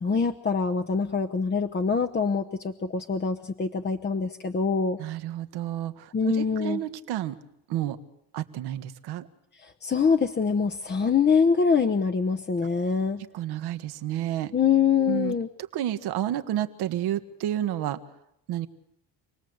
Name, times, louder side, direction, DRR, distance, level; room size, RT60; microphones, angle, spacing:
voice 1, 0.0-5.0 6.1-6.8 9.6-13.2 14.5-15.5, left 5 dB, 25° left, 7 dB, 1.0 m, -24 dB
voice 2, 5.0-7.4 7.7-8.0 8.3-9.3 13.3-14.5 15.1-15.3 15.7-18.0 18.5-18.7, right 12 dB, 75° right, 9 dB, 1.6 m, -30 dB
27.5 x 19.0 x 8.0 m, 0.81 s
cardioid pair, 110°, 39 cm